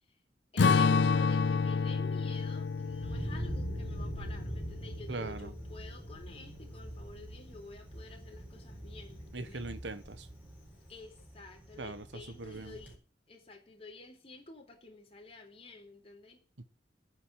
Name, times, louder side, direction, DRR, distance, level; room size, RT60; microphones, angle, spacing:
voice 1, 0.5-9.7 10.9-13.0 13.3-16.4, left 3 dB, 35° left, 2 dB, 4.1 m, -50 dB
Strum, 0.6-5.2, left 5 dB, 75° left, 0.6 m, -29 dB
Thunder, 2.3-12.9, right 1 dB, 10° right, 4.1 m, -43 dB
voice 2, 5.1-5.5 9.3-10.3 11.8-12.8 16.6-16.7, right 3 dB, 90° right, 13 dB, 1.3 m, -41 dB
9.3 x 8.0 x 9.2 m, 0.37 s
head